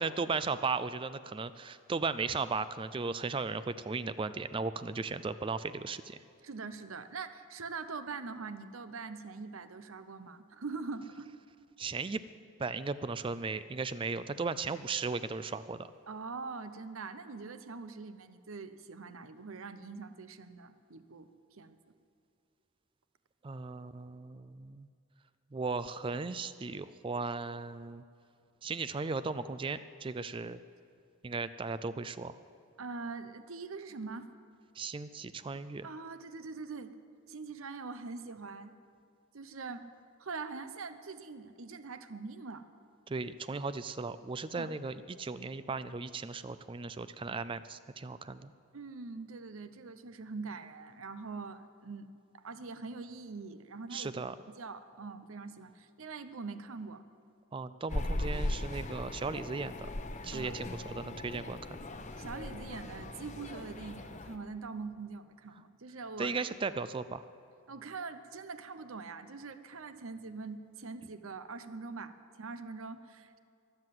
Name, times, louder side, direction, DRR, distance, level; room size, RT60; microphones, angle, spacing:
voice 1, 0.0-6.2 11.8-12.2 12.6-15.9 23.4-24.9 25.5-28.0 28.6-30.6 31.2-32.4 34.8-35.9 43.1-48.5 53.9-54.4 57.5-59.9 60.2-61.8 66.2-67.2, right 4 dB, 25° right, 13 dB, 0.3 m, -36 dB
voice 2, 6.4-11.3 16.1-21.3 21.6-21.8 32.8-34.3 35.8-36.9 37.3-38.7 39.3-39.9 40.2-42.7 44.5-44.7 48.7-52.1 52.3-54.2 54.6-57.0 60.3-60.6 62.2-66.4 67.7-73.4, right 4 dB, 70° right, 11 dB, 0.8 m, -43 dB
sound 1, 57.9-64.4, left 1 dB, 35° left, 0.8 m, -38 dB
23.0 x 7.8 x 7.8 m, 2.5 s
head